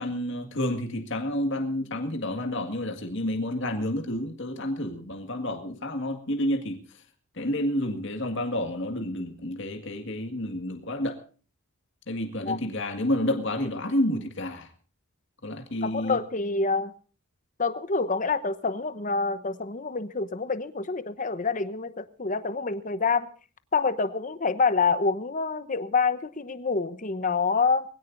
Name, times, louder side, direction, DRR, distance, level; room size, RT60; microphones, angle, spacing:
voice 1, 0.0-6.8 7.4-11.2 12.1-14.7 15.4-16.2, left 1 dB, 60° left, 2.0 m, -29 dB
voice 2, 15.8-16.9 17.6-23.3 23.7-27.8, left 4 dB, 35° left, 1.0 m, -27 dB
22.5 x 16.5 x 2.6 m
head